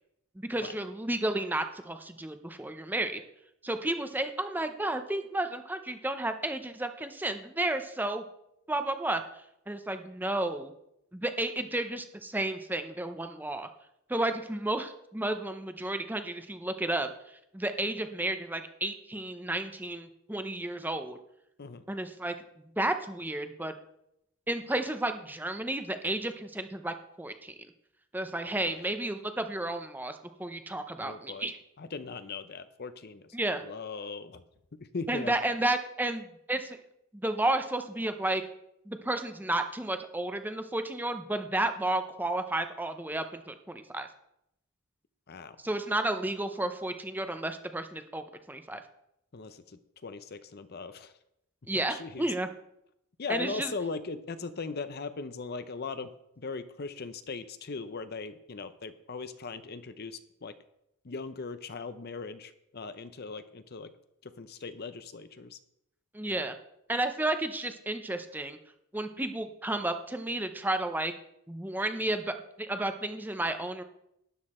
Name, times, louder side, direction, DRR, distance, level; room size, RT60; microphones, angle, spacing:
voice 1, 0.4-3.2 3.6-8.2 8.7-9.2 9.7-10.7 11.1-13.7 14.1-21.2 21.9-23.7 24.5-27.5 28.1-31.6 33.3-33.6 35.1-36.8 37.2-38.4 38.9-44.1 45.6-48.8 51.7-52.5 53.3-53.7 66.1-66.5 66.9-68.6 68.9-71.1 71.5-73.8, right 1 dB, 10° right, 8 dB, 0.7 m, -32 dB
voice 2, 31.0-31.5 31.8-33.4 33.6-34.4 34.9-35.4 45.3-45.6 49.3-51.1 51.9-52.3 53.2-56.1 56.4-60.5 61.0-63.9 64.2-65.6, left 4 dB, 45° left, 11 dB, 0.6 m, -39 dB
12.5 x 9.7 x 4.3 m, 0.80 s
head